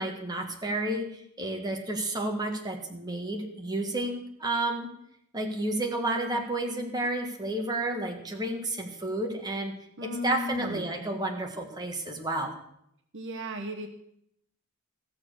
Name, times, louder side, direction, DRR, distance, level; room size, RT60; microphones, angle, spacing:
voice 1, 0.0-4.9 5.3-9.7 10.0-12.5, right 1 dB, 20° right, 2 dB, 1.6 m, -31 dB
voice 2, 10.0-10.9 13.1-13.9, equal, 55° right, 5 dB, 1.2 m, -35 dB
15.5 x 7.2 x 6.5 m, 0.73 s
head